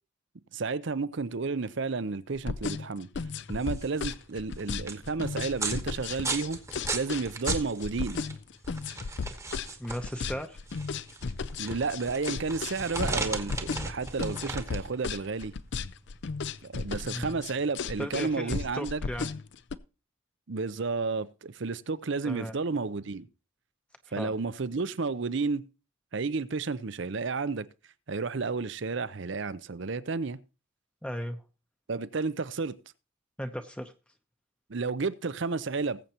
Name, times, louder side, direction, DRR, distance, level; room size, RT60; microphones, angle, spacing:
voice 1, 0.5-3.1 3.5-6.6 6.9-8.2 11.6-15.5 16.6-19.0 20.5-23.3 24.1-25.6 26.1-27.7 28.1-30.4 31.9-32.7 34.7-36.0, right 4 dB, 60° right, 0.6 m, -31 dB
sound 1, 2.4-19.8, left 5 dB, 55° left, 0.5 m, -34 dB
sound 2, 3.4-18.0, right 3 dB, 15° right, 1.1 m, -38 dB
voice 2, 9.8-10.6 17.1-17.3 18.0-19.3 22.2-22.5 24.2-24.3 31.0-31.4 33.4-33.9, equal, 5° left, 0.7 m, -36 dB
19.5 x 7.9 x 2.9 m
head